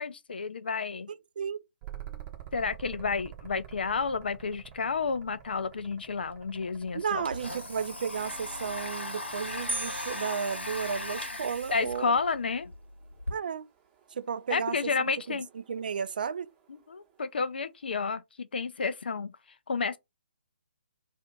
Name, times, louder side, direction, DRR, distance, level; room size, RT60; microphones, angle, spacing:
voice 1, 0.0-1.1 2.5-7.2 11.7-12.7 14.5-15.5 16.7-19.3 19.7-20.0, left 5 dB, 60° left, 0.5 m, -31 dB
voice 2, 1.1-1.6 6.9-12.2 13.3-13.7 14.1-14.9 15.3-15.4 15.7-16.5, right 6 dB, 50° right, 0.3 m, -33 dB
sound 1, 1.8-10.4 12.6-17.1, right 11 dB, 25° right, 0.9 m, -49 dB
Domestic sounds home sounds, 6.3-6.4 6.7-13.3, left 2 dB, 85° left, 1.1 m, -39 dB
sound 2, 9.7-11.5, right 2 dB, 80° right, 0.8 m, -38 dB
2.5 x 2.5 x 3.6 m
figure-of-eight pair, 135°, 6 cm